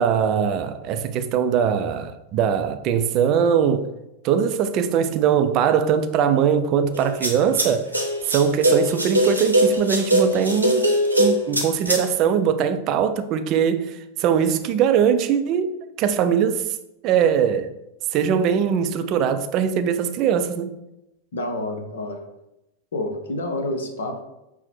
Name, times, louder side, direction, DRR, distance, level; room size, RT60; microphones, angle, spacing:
voice 1, 0.0-3.9 4.2-7.9 8.3-10.9 11.2-15.7 16.0-16.6 17.0-17.7 18.1-20.7, right 7 dB, 40° right, 0.3 m, -21 dB
sound 1, 6.9-12.0, right 1 dB, 90° right, 0.8 m, -21 dB
voice 2, 21.3-22.2 22.9-24.2, left 1 dB, 65° left, 0.7 m, -28 dB
5.7 x 2.0 x 4.3 m
figure-of-eight pair, 90°, 0 cm